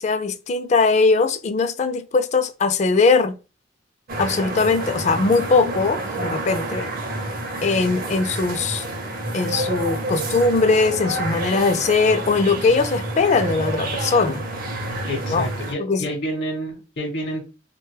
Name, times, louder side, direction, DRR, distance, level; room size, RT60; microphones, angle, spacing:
voice 1, 0.0-3.4 4.2-6.9 7.6-8.8 9.3-14.4 15.3-15.5 15.8-16.1, left 4 dB, 40° left, 0.3 m, -20 dB
sound 1, 4.1-15.7, right 2 dB, 50° right, 0.6 m, -29 dB
voice 2, 15.1-17.4, equal, 60° left, 0.7 m, -28 dB
2.9 x 2.2 x 3.2 m
head